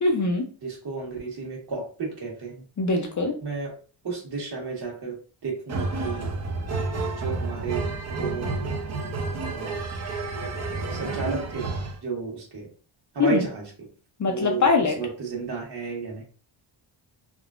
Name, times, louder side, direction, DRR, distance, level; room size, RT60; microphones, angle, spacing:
voice 1, 0.0-0.5 2.8-3.4 13.2-13.4 14.2-15.0, left 3 dB, 35° left, 3 dB, 0.6 m, -22 dB
voice 2, 0.6-2.6 3.4-3.7 4.0-5.2 5.4-6.3 7.2-7.8 8.2-8.5 9.4-9.8 10.9-11.7 12.0-12.7 13.1-13.6 14.3-14.7 15.0-16.2, right 4 dB, 50° right, -1 dB, 1.4 m, -32 dB
sound 1, 5.7-12.0, right 3 dB, 35° right, 0.6 m, -30 dB
3.7 x 2.2 x 2.4 m, 0.38 s
cardioid pair, 100°, 50 cm